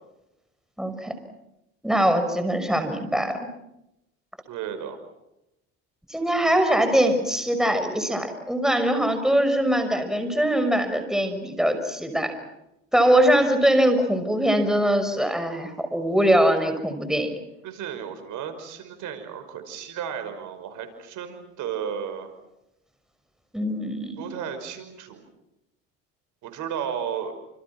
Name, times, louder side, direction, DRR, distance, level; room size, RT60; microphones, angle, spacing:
voice 1, 0.8-1.1 1.8-3.4 6.1-12.3 12.9-17.3 23.5-24.3, right 1 dB, ahead, 8 dB, 6.0 m, -22 dB
voice 2, 4.5-5.0 17.6-22.3 24.2-25.3 26.4-27.3, right 8 dB, 65° right, 9 dB, 5.6 m, -33 dB
29.5 x 28.0 x 6.1 m, 0.88 s
supercardioid pair, 85°, 33 cm